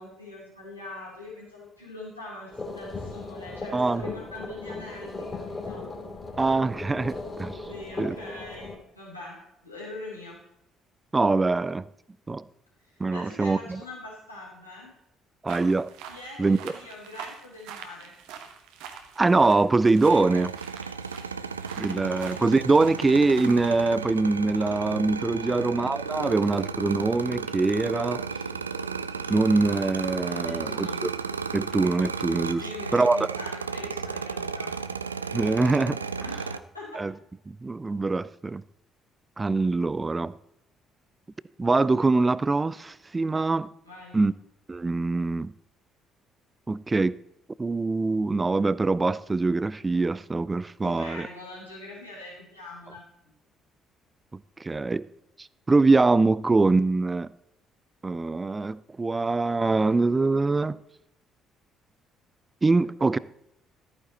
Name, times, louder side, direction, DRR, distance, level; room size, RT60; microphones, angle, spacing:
voice 1, 0.0-2.5 2.8-5.8 7.7-9.4 9.6-10.4 12.8-14.9 16.1-18.1 25.4-25.7 30.4-31.0 32.6-34.7 36.2-36.4 36.7-37.0 43.8-44.2 50.8-53.0, left 2 dB, 90° left, 3.7 m, -42 dB
sound 1, 2.5-8.7, left 3 dB, 25° left, 3.2 m, -37 dB
voice 2, 3.7-4.1 6.4-7.6 8.0-8.2 11.1-11.8 12.3-12.4 13.0-13.8 15.4-15.9 16.4-16.7 19.2-20.5 21.8-28.3 29.3-30.9 31.5-32.6 32.9-33.2 35.3-36.0 37.0-37.1 37.5-38.6 39.4-40.3 41.6-43.7 44.1-44.3 44.7-45.5 46.7-47.1 47.6-51.3 54.3-55.0 55.4-57.3 58.0-60.8 62.6-63.2, right 3 dB, 20° right, 0.5 m, -23 dB
sound 2, 15.5-23.8, right 7 dB, 65° right, 1.2 m, -45 dB
sound 3, 20.0-36.6, right 5 dB, 85° right, 0.4 m, -34 dB
14.0 x 8.9 x 4.1 m
figure-of-eight pair, 45°, 0 cm